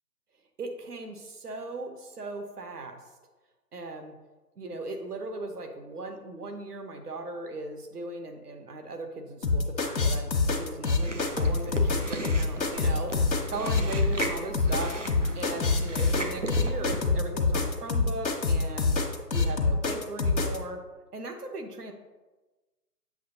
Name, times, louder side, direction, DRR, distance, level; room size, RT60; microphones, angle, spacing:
voice 1, 0.6-3.0 3.7-4.1 4.6-13.2 13.5-14.9 15.3-19.0 19.3-20.8 21.1-21.9, right 2 dB, 65° right, 5 dB, 1.0 m, -38 dB
sound 1, 9.4-20.6, left 3 dB, 80° left, 1.1 m, -25 dB
Chewing mastication, 11.0-17.0, right 1 dB, 50° right, 0.5 m, -36 dB
7.5 x 5.6 x 2.7 m, 1.2 s
figure-of-eight pair, 175°, 50 cm